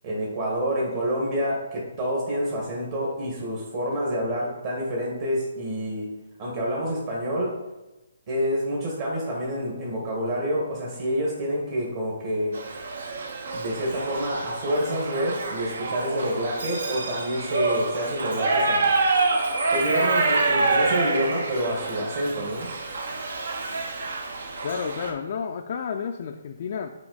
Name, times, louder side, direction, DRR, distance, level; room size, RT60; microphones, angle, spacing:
voice 1, 0.0-6.1 6.4-7.5 8.3-12.6 13.5-18.9 19.7-22.7, equal, 40° right, -4 dB, 1.6 m, -28 dB
Shout / Livestock farm animals working animals, 12.5-25.1, right 3 dB, 70° right, 1.0 m, -27 dB
voice 2, 24.6-26.9, left 6 dB, 50° left, 4 dB, 0.4 m, -31 dB
5.9 x 4.3 x 4.0 m, 1.1 s
hypercardioid pair, 150°, 0 cm